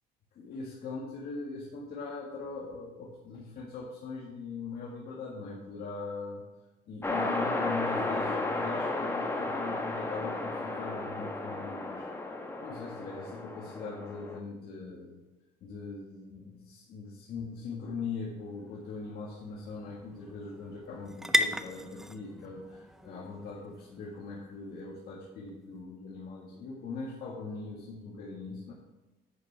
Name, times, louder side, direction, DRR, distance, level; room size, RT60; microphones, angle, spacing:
voice 1, 0.3-6.5 6.9-12.1 12.6-15.2 15.6-28.7, left 4 dB, 65° left, -3 dB, 1.9 m, -41 dB
sound 1, 7.0-14.4, left 2 dB, 15° left, 1.4 m, -33 dB
sound 2, 17.7-25.6, equal, ahead, 0.5 m, -37 dB
10.5 x 8.4 x 3.5 m, 1.1 s
cardioid pair, 110°, 17 cm